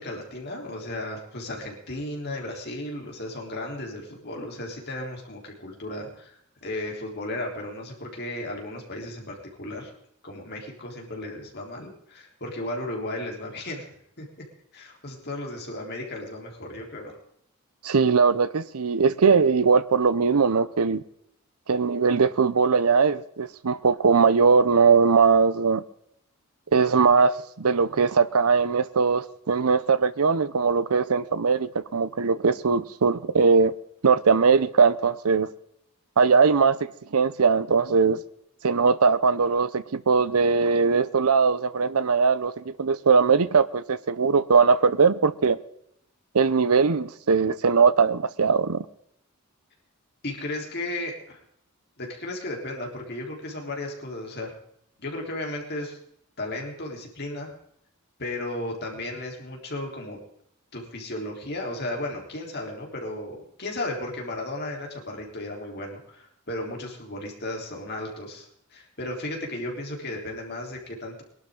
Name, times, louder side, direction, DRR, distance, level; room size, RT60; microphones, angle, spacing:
voice 1, 0.0-9.9 10.2-13.9 14.2-14.3 14.7-17.2 50.2-51.4 52.0-54.5 55.0-56.0 56.4-57.5 58.2-60.2 60.7-71.2, left 1 dB, 50° left, 3.7 m, -35 dB
voice 2, 17.8-21.0 21.7-25.8 26.7-33.7 34.0-35.5 36.2-38.2 38.6-45.6 46.3-48.9, right 5 dB, 80° right, 0.7 m, -20 dB
22.0 x 12.0 x 3.8 m
head